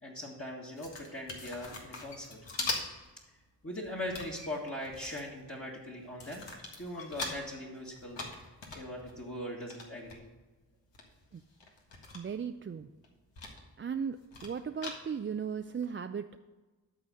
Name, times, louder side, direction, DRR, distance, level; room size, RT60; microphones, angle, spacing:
voice 1, 0.0-2.4 3.6-6.4 6.8-8.2 8.7-10.2, left 1 dB, 30° left, -4 dB, 1.9 m, -40 dB
sound 1, 0.8-3.2 3.4-5.6 6.0-7.5 7.9-10.2 10.7-10.8 10.9-12.5 12.8-13.6 13.9-15.3 15.8-15.9, left 3 dB, 75° left, 1.7 m, -41 dB
voice 2, 12.1-12.9 13.8-14.2 14.4-16.4, right 7 dB, 30° right, 8 dB, 0.4 m, -36 dB
12.0 x 4.1 x 6.3 m, 1.2 s
cardioid pair, 45°, 44 cm